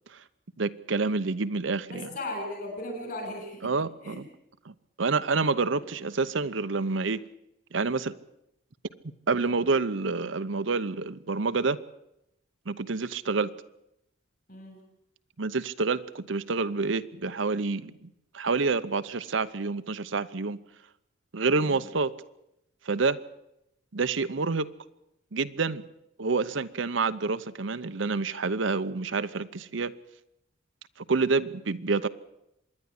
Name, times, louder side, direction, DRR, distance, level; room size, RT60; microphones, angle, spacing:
voice 1, 0.6-2.1 3.6-4.2 4.6-4.7 5.0-7.2 7.7-8.1 9.3-11.8 12.7-13.5 15.4-18.1 18.3-20.6 21.3-22.1 22.9-23.2 23.9-24.7 25.3-25.9 26.2-29.9 31.1-32.1, right 4 dB, 75° right, 11 dB, 0.8 m, -28 dB
voice 2, 1.9-3.7 4.0-4.2 14.5-14.8 21.6-21.9, left 1 dB, 50° left, 3 dB, 7.7 m, -37 dB
26.0 x 11.0 x 9.9 m, 0.83 s
head